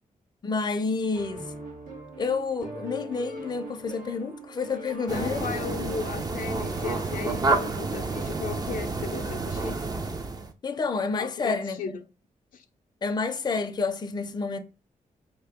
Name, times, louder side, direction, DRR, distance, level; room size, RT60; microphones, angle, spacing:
voice 1, 0.4-1.4 2.2-5.4 10.6-12.0 13.0-14.6, left 4 dB, 30° left, 0.5 m, -29 dB
sound 1, 1.1-8.6, right 2 dB, 80° right, 1.4 m, -42 dB
voice 2, 5.1-9.8 11.2-12.0 12.5-12.6, left 6 dB, 75° left, 0.5 m, -36 dB
sound 2, 5.1-10.5, right 3 dB, 25° right, 0.5 m, -29 dB
4.3 x 2.8 x 3.4 m
wide cardioid pair, 120°, 14 cm